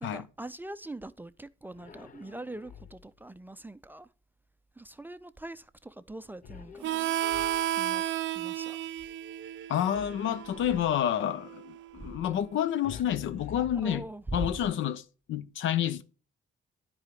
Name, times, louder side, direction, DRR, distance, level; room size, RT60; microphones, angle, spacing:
voice 1, 0.0-4.1 4.8-7.4 7.7-8.0 8.3-8.8 13.8-14.5, right 2 dB, 10° right, 0.4 m, -42 dB
sound 1, 1.7-3.2 6.4-8.0 9.9-11.1 12.8-14.5, left 8 dB, 45° left, 0.6 m, -48 dB
Harmonica, 6.8-12.1, right 11 dB, 70° right, 0.5 m, -33 dB
voice 2, 9.7-14.0 14.3-16.0, left 10 dB, 75° left, 0.7 m, -29 dB
9.8 x 4.9 x 5.0 m
cardioid pair, 90°, 20 cm